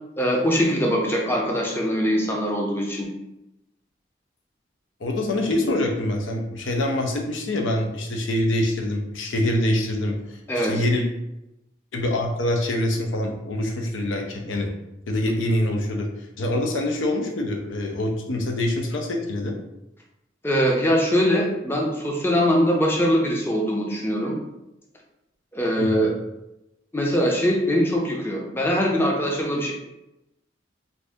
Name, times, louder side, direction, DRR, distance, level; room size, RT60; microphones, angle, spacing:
voice 1, 0.2-3.1 10.5-10.8 20.4-24.4 25.5-26.1 26.9-29.7, equal, 10° left, -1 dB, 0.5 m, -22 dB
voice 2, 5.0-11.0 11.9-14.7 15.1-16.1 16.4-19.5 25.8-26.1, left 1 dB, 85° left, 3 dB, 0.6 m, -25 dB
2.6 x 2.6 x 3.4 m, 0.90 s
head